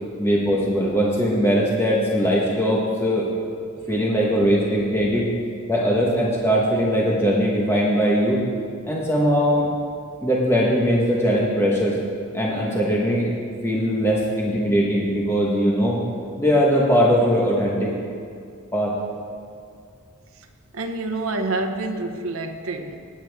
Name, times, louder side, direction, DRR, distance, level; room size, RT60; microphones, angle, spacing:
voice 1, 0.2-3.3 3.9-5.3 5.7-8.4 8.9-9.7 10.2-11.9 12.3-13.3 13.6-16.0 16.4-17.9 18.7-18.9, equal, 10° left, -4 dB, 1.3 m, -20 dB
voice 2, 20.7-23.1, right 2 dB, 75° right, 5 dB, 0.8 m, -28 dB
19.0 x 8.6 x 3.6 m, 2.3 s
head